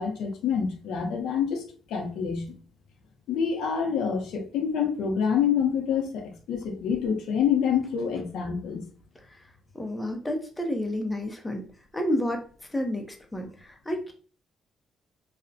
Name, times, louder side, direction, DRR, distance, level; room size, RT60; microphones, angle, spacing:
voice 1, 0.0-1.6 1.9-2.5 3.3-8.8, left 7 dB, 85° left, 3 dB, 0.5 m, -27 dB
voice 2, 9.7-11.6 11.9-13.1 13.3-14.1, left 1 dB, 15° left, 3 dB, 0.5 m, -30 dB
2.4 x 2.0 x 2.5 m, 0.40 s
cardioid pair, 90°, 0 cm